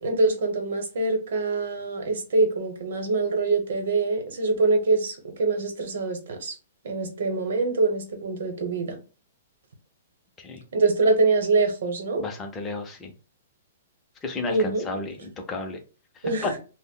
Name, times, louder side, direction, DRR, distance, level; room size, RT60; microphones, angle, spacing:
voice 1, 0.0-6.6 6.8-9.0 10.7-12.2 14.5-14.8 16.2-16.5, right 3 dB, 70° right, 0.8 m, -24 dB
voice 2, 12.2-13.1 14.2-15.8 16.2-16.5, left 3 dB, 15° left, 0.5 m, -33 dB
2.2 x 2.0 x 3.6 m
hypercardioid pair, 170°, 0 cm